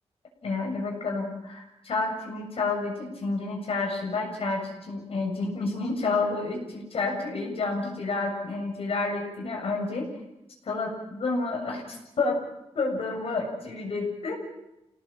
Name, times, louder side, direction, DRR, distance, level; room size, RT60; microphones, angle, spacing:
voice 1, 0.4-10.1 10.6-12.4 12.7-14.3, left 3 dB, 60° left, 2 dB, 7.2 m, -30 dB
28.5 x 18.5 x 7.5 m, 0.92 s
wide cardioid pair, 170°, 11 cm